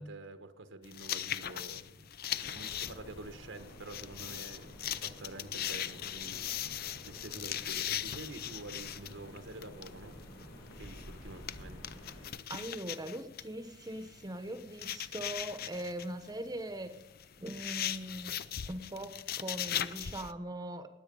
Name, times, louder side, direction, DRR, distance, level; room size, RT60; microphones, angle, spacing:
voice 1, 0.0-2.1 2.5-10.2 10.8-11.9, right 2 dB, 80° right, 9 dB, 1.2 m, -48 dB
sound 1, 0.8-20.3, left 10 dB, 55° left, 0.5 m, -40 dB
sound 2, 2.3-12.3, equal, 90° left, 5.1 m, -51 dB
voice 2, 12.5-16.9 17.4-18.4 18.7-20.9, right 1 dB, 20° right, 9 dB, 0.9 m, -41 dB
20.0 x 8.2 x 5.3 m, 0.96 s
head